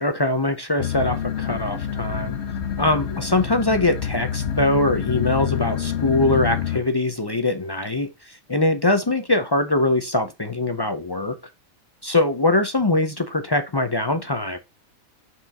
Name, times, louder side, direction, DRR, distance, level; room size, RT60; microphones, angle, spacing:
voice 1, 0.0-2.3 2.8-11.4 12.0-14.6, left 2 dB, 35° left, 0.4 m, -22 dB
sound 1, 0.8-6.8, left 9 dB, 55° left, 1.2 m, -27 dB
6.0 x 4.7 x 4.1 m
omnidirectional pair, 1.4 m